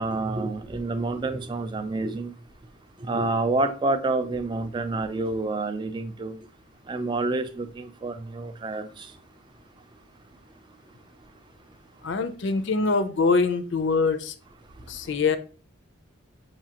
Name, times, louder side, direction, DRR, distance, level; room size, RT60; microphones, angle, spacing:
voice 1, 0.0-2.3 3.0-6.4 6.9-9.1, right 2 dB, 20° right, 0.3 m, -28 dB
voice 2, 12.0-14.3 14.9-15.4, left 4 dB, 55° left, 0.4 m, -24 dB
5.8 x 2.7 x 2.8 m
head